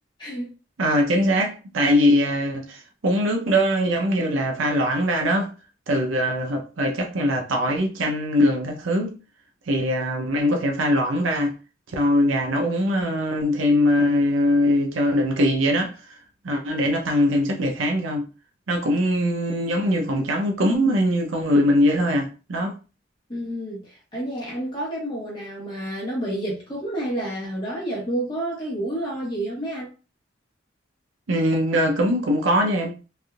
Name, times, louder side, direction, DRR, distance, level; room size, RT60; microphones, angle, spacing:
voice 1, 0.8-5.5 5.9-9.2 9.7-11.5 11.9-16.2 16.4-18.3 18.7-22.8 31.3-32.9, equal, 90° right, 0.7 m, -22 dB
voice 2, 23.3-29.9, right 1 dB, 25° left, 1.1 m, -29 dB
3.4 x 2.6 x 2.4 m
head